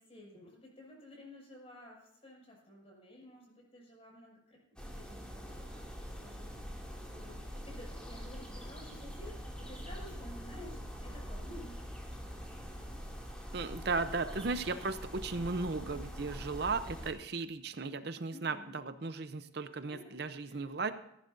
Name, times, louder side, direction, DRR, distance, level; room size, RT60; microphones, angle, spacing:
voice 1, 0.0-5.8 6.2-12.8 18.3-18.8 19.7-20.6, left 1 dB, 30° left, -2 dB, 6.2 m, -53 dB
sound 1, 4.8-17.1, equal, 5° left, 2.4 m, -44 dB
voice 2, 13.5-20.9, right 3 dB, 55° right, 11 dB, 0.6 m, -36 dB
18.0 x 14.5 x 2.6 m, 0.81 s
head